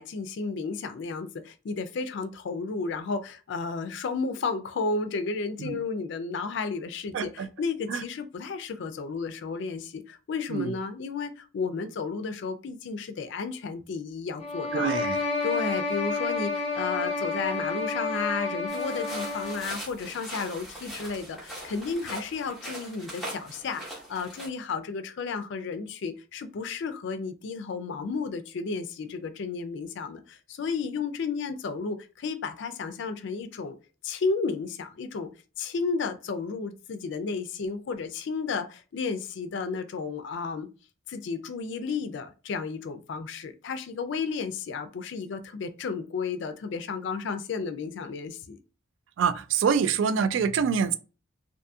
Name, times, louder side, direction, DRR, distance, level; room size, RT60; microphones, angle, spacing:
voice 1, 0.0-14.9 15.4-33.8 34.0-35.3 35.6-40.7 41.1-48.6, left 4 dB, 65° left, 0.4 m, -33 dB
voice 2, 7.1-7.5 7.9-8.0 10.5-10.7 14.7-15.2 49.2-51.0, right 6 dB, 70° right, 0.3 m, -25 dB
sound 1, 14.4-19.8, left 3 dB, 30° left, 0.7 m, -30 dB
sound 2, 18.7-24.5, right 1 dB, ahead, 1.1 m, -41 dB
2.6 x 2.6 x 2.3 m
head